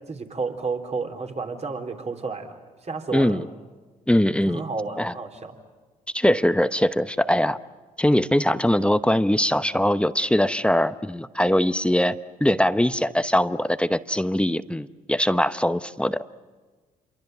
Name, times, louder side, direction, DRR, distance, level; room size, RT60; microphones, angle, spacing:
voice 1, 0.1-3.4 4.4-5.6, right 4 dB, 40° right, 4 dB, 3.6 m, -31 dB
voice 2, 3.1-3.5 4.1-4.6 5.0-5.1 6.1-7.6 8.0-12.2 12.4-16.2, left 1 dB, 5° left, 13 dB, 0.9 m, -21 dB
27.5 x 23.0 x 7.9 m, 1.3 s
hypercardioid pair, 55°, 17 cm